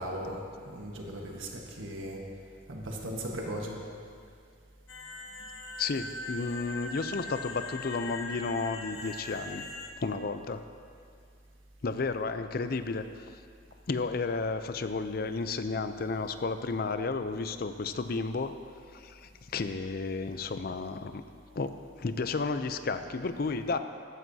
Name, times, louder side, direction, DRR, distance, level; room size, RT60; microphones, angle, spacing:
voice 1, 0.0-2.3 2.7-3.8, right 1 dB, 80° right, -1 dB, 1.4 m, -37 dB
sound 1, 4.9-9.9, left 3 dB, 90° left, 0.9 m, -41 dB
voice 2, 5.8-9.6 10.0-10.6 11.8-13.1 13.9-18.5 18.9-21.2 21.6-23.8, left 4 dB, 50° left, 10 dB, 0.5 m, -32 dB
14.0 x 12.0 x 2.8 m, 2.3 s
head